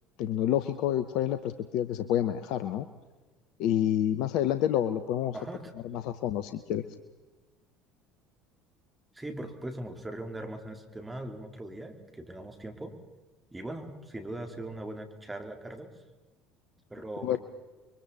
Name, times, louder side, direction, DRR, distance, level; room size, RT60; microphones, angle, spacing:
voice 1, 0.2-2.9 3.6-5.4 5.8-6.8 17.2-17.4, left 11 dB, 60° left, 11 dB, 0.9 m, -28 dB
voice 2, 5.3-6.1 9.1-13.0 13.5-15.9 16.9-17.4, right 1 dB, 10° right, 5 dB, 3.6 m, -40 dB
29.5 x 23.5 x 4.2 m, 1.2 s
figure-of-eight pair, 65°, 0 cm